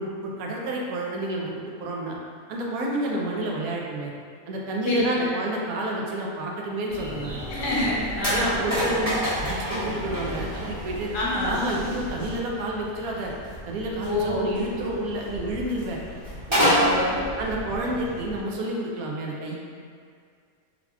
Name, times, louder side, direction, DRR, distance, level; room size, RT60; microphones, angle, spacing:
voice 1, 0.0-1.5 1.8-2.2 2.5-4.1 4.5-7.4 8.3-11.1 11.4-13.3 13.7-16.0 16.5-16.9 17.4-19.5, right 1 dB, 85° right, -2 dB, 1.0 m, -29 dB
voice 2, 4.8-5.3 7.5-8.6 11.1-11.6 14.0-14.5 16.5-17.2, left 1 dB, 65° left, -6 dB, 1.0 m, -27 dB
sound 1, 6.9-12.4, equal, 65° right, 1.7 m, -35 dB
sound 2, 7.3-18.4, equal, 20° right, 1.3 m, -30 dB
3.9 x 2.8 x 2.3 m, 2.1 s
omnidirectional pair, 1.5 m